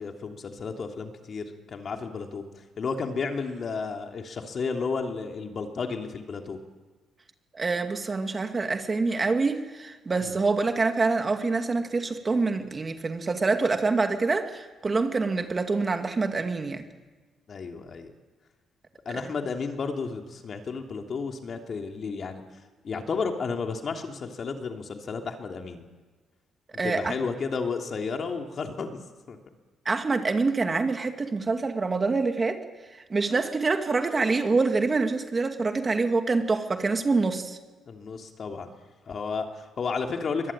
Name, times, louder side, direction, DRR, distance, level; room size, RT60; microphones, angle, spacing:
voice 1, 0.0-2.4 2.8-6.6 10.2-10.3 17.5-18.1 19.0-22.4 22.8-25.8 26.7-29.0 29.3-29.4 37.9-38.7 39.1-40.5, left 5 dB, 50° left, 3 dB, 3.0 m, -32 dB
voice 2, 7.5-16.8 19.2-19.3 26.8-27.1 29.9-32.6 33.1-37.6, right 3 dB, 30° right, 6 dB, 2.3 m, -26 dB
24.0 x 21.0 x 9.0 m, 1.3 s
cardioid pair, 90°, 0 cm